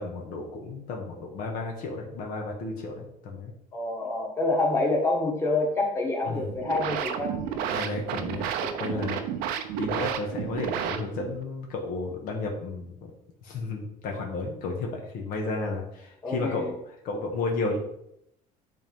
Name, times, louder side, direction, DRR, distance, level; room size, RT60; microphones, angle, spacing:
voice 1, 0.0-3.5 6.3-6.5 7.7-8.5 8.8-9.2 9.8-13.1 13.4-16.7 17.0-17.8, left 3 dB, 70° left, 1 dB, 1.5 m, -32 dB
voice 2, 3.7-7.6 8.6-9.1 16.2-16.7, left 2 dB, 15° left, -2 dB, 1.7 m, -27 dB
sound 1, 6.4-11.4, right 9 dB, 80° right, 0.7 m, -31 dB
10.5 x 3.7 x 3.6 m, 0.76 s
cardioid pair, 145°, 15 cm